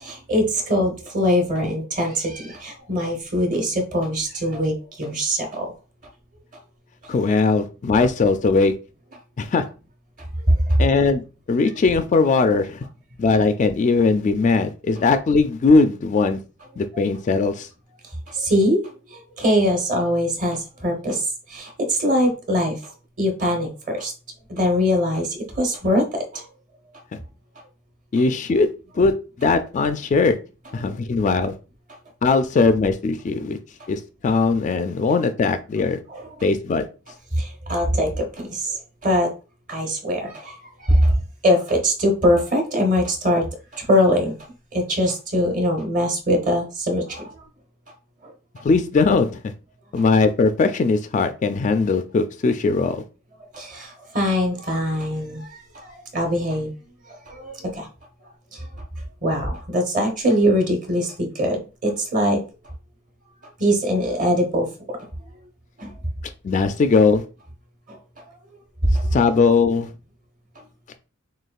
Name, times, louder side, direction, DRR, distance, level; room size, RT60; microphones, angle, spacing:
voice 1, 0.0-5.7 10.5-10.8 18.3-18.8 19.1-21.2 21.5-22.8 23.2-24.1 24.5-26.0 26.3-26.4 36.1-36.3 37.4-38.2 38.5-38.8 39.0-39.3 39.7-40.5 40.8-41.1 41.4-43.4 43.7-44.3 44.7-47.3 53.5-55.4 55.8-56.7 57.3-57.9 59.2-62.4 63.6-64.7 65.8-65.9 68.9-69.1, equal, 40° right, 3 dB, 1.0 m, -22 dB
voice 2, 7.1-8.7 9.4-9.6 10.8-11.2 11.5-12.8 13.2-16.4 16.8-17.7 28.1-28.7 29.0-29.1 29.4-30.4 30.7-31.5 32.2-33.6 33.9-36.0 36.4-36.9 48.6-49.3 49.9-53.0 66.4-67.2 69.1-69.9, left 4 dB, 35° left, 9 dB, 0.3 m, -19 dB
6.3 x 2.3 x 2.3 m, 0.34 s
head